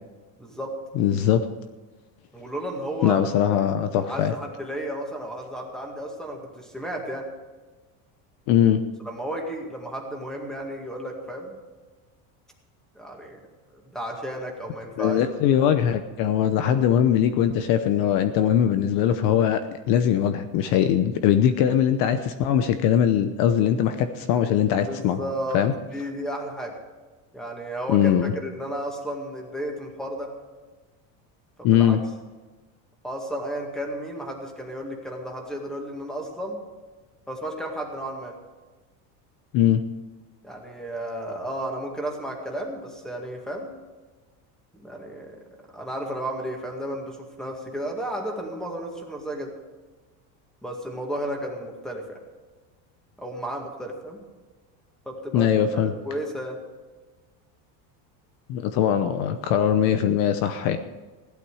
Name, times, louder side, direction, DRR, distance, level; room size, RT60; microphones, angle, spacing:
voice 1, 0.4-0.7 2.3-3.2 4.0-7.3 9.1-11.5 13.0-13.4 13.7-15.2 24.9-25.6 25.9-26.7 27.3-30.3 31.6-32.0 33.0-36.6 37.3-38.3 40.4-43.7 44.8-45.4 45.7-49.5 50.6-52.2 53.2-54.2 55.1-56.6, right 1 dB, ahead, 1 dB, 2.0 m, -33 dB
voice 2, 0.9-1.4 3.0-4.3 8.5-8.8 15.0-25.2 25.5-25.7 27.9-28.3 31.6-32.0 39.5-39.8 55.3-55.9 58.5-60.8, left 9 dB, 55° left, 10 dB, 0.9 m, -21 dB
17.0 x 12.0 x 4.9 m, 1.3 s
cardioid pair, 175°, 41 cm